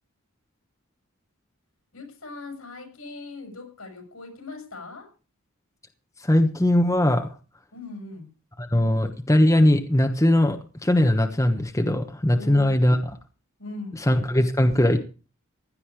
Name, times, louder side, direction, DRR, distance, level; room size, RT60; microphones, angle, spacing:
voice 1, 1.9-5.1 7.7-8.3 12.3-12.8 13.6-14.0, left 3 dB, 80° left, 4 dB, 6.1 m, -40 dB
voice 2, 6.2-7.3 8.7-13.0 13.9-15.0, left 1 dB, 15° left, 5 dB, 1.1 m, -20 dB
16.0 x 11.0 x 4.9 m, 0.35 s
head